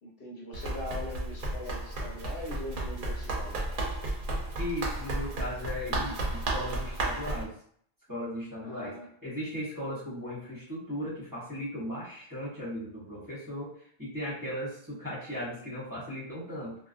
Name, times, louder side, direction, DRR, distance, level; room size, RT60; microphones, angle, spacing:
voice 1, 0.0-3.7 8.6-9.1, left 1 dB, 65° left, -3 dB, 0.9 m, -41 dB
Run, 0.5-7.4, right 2 dB, 60° right, 0.7 m, -33 dB
voice 2, 4.6-7.5 8.1-8.9 9.2-13.7 14.0-16.8, equal, 20° right, -8 dB, 0.8 m, -37 dB
2.4 x 2.1 x 2.4 m, 0.63 s
omnidirectional pair, 1.0 m